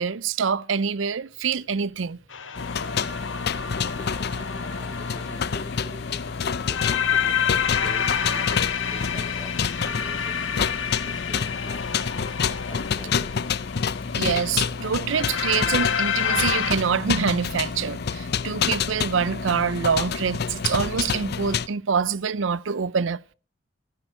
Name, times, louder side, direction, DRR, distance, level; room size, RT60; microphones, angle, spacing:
voice 1, 0.0-2.2 14.2-23.2, right 6 dB, 80° right, 0.6 m, -25 dB
sound 1, 1.2-20.7, equal, 65° right, 7.7 m, -54 dB
sound 2, 2.3-16.7, left 7 dB, 85° left, 1.7 m, -29 dB
sound 3, 2.6-21.7, left 6 dB, 60° left, 0.6 m, -28 dB
voice 2, 3.9-8.5 8.8-10.4 11.0-12.0 12.4-13.5, right 1 dB, 20° right, 2.0 m, -45 dB
14.5 x 9.9 x 6.4 m
head